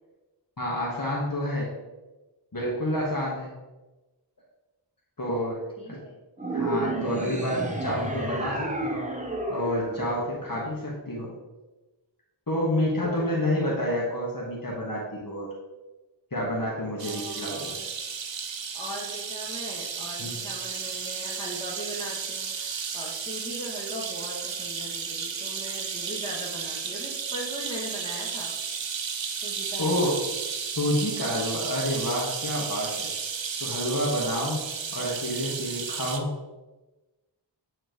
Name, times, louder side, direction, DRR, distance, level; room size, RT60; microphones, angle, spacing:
voice 1, 0.6-1.7 2.5-3.5 5.2-5.6 5.9-6.0 6.5-9.1 9.5-11.3 12.5-15.5 16.3-17.7 20.2-20.4 29.8-30.2 30.6-33.1 33.6-34.6 34.9-36.3, left 1 dB, 45° left, -4 dB, 1.5 m, -29 dB
voice 2, 5.8-6.2 12.7-13.5 17.0-17.9 18.7-28.5 29.4-30.1, equal, 10° left, -4 dB, 2.0 m, -39 dB
sound 1, 6.4-10.9, right 2 dB, 15° right, 0.9 m, -31 dB
sound 2, 17.0-36.2, right 6 dB, 70° right, 0.7 m, -33 dB
9.0 x 4.4 x 3.1 m, 1.1 s
wide cardioid pair, 60°, 46 cm